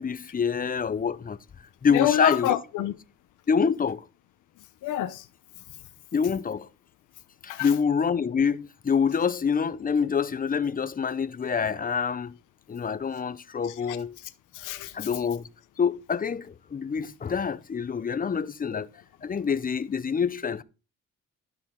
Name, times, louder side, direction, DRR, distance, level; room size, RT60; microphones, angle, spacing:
voice 1, 0.0-1.4 1.8-2.6 3.5-4.0 6.1-6.7 7.4-12.4 12.7-14.2 14.9-15.5 15.8-18.9 19.2-20.6, left 6 dB, 30° left, 0.7 m, -26 dB
voice 2, 1.9-2.9 4.8-5.2 7.5-7.7 13.9-14.0 14.5-14.9 18.7-18.8, left 13 dB, 85° left, 0.9 m, -27 dB
12.5 x 5.8 x 3.8 m
cardioid pair, 90°, 30 cm